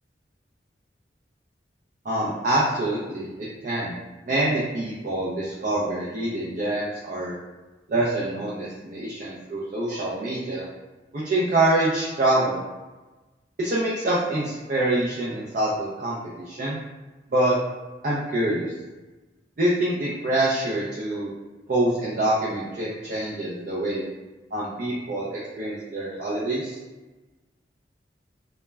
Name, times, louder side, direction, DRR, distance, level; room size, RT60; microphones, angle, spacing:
voice 1, 2.0-3.3 3.6-7.4 7.9-10.6 11.1-12.6 13.6-16.8 17.3-17.5 18.0-18.7 19.6-21.3 21.7-24.0 24.5-26.8, right 1 dB, 45° right, -7 dB, 0.4 m, -25 dB
2.2 x 2.1 x 3.2 m, 1.2 s
head